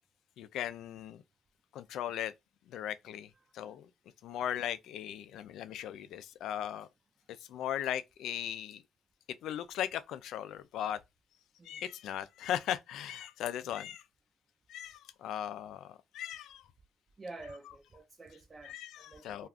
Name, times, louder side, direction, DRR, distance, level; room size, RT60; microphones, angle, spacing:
voice 1, 0.4-1.2 1.7-2.3 2.7-3.9 4.2-6.9 7.5-8.8 9.4-11.0 11.6-14.0 14.7-15.9 16.1-16.6 18.6-19.5, left 10 dB, 80° left, 0.3 m, -38 dB
voice 2, 17.2-19.5, right 2 dB, 30° right, 0.5 m, -49 dB
2.4 x 2.3 x 3.4 m
cardioid pair, 90°, 0 cm